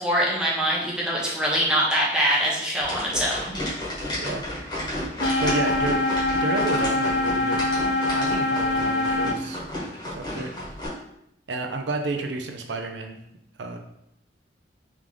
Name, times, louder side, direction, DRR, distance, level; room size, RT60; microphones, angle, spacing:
voice 1, 0.0-3.5, equal, 5° right, -5 dB, 0.8 m, -23 dB
sound 1, 2.8-10.9, left 1 dB, 25° left, 1.3 m, -32 dB
sound 2, 5.2-9.3, left 2 dB, 70° left, 0.4 m, -24 dB
voice 2, 5.4-6.0 6.3-7.8 8.1-9.6 10.1-10.5 11.5-13.2 13.6-13.8, right 3 dB, 80° right, 5 dB, 0.6 m, -30 dB
3.6 x 3.1 x 3.7 m, 0.78 s
head